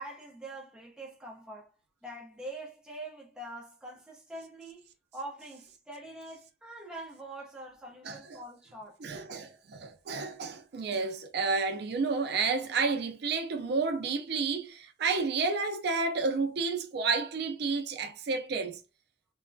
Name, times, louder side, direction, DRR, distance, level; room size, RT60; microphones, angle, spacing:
voice 1, 0.0-1.7 2.0-4.9 5.1-9.0, right 1 dB, 5° right, 0.6 m, -44 dB
voice 2, 8.0-8.4 9.0-18.8, right 4 dB, 65° right, 0.4 m, -31 dB
3.1 x 2.2 x 2.5 m
head